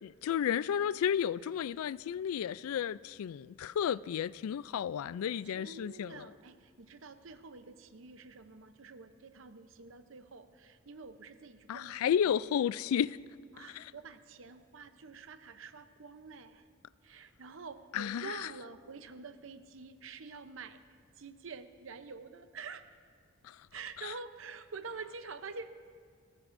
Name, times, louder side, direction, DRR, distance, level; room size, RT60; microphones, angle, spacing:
voice 1, 0.0-6.3 11.7-13.2 13.8-13.9 17.9-18.4 23.4-23.6, left 8 dB, 85° left, 0.3 m, -32 dB
voice 2, 5.4-12.4 13.5-16.7 17.0-20.8 21.1-22.9 23.7-25.9, right 4 dB, 65° right, 0.7 m, -47 dB
22.0 x 18.5 x 2.6 m
head